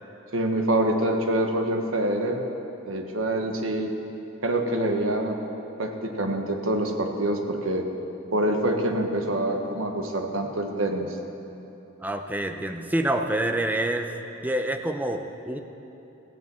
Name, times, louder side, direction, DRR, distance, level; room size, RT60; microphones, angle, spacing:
voice 1, 0.3-2.4 2.8-3.9 4.4-5.4 5.8-7.9 8.3-11.2, right 1 dB, 85° right, 3 dB, 1.3 m, -26 dB
voice 2, 12.0-14.1 14.4-15.6, right 1 dB, 10° right, 5 dB, 0.6 m, -27 dB
15.0 x 9.1 x 7.6 m, 3.0 s
head